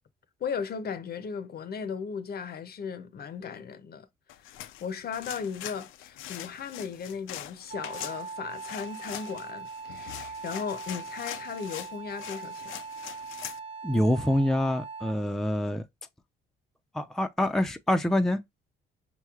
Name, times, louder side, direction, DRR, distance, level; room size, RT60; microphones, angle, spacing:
voice 1, 0.4-4.1 4.5-12.7, left 6 dB, 50° left, 0.6 m, -36 dB
sound 1, 4.3-13.6, left 12 dB, 90° left, 0.4 m, -42 dB
Wind instrument woodwind instrument, 7.7-15.3, right 5 dB, 70° right, 0.8 m, -41 dB
voice 2, 13.8-15.8 16.9-18.4, left 1 dB, ahead, 0.5 m, -26 dB
5.5 x 3.0 x 2.3 m
cardioid pair, 90°, 20 cm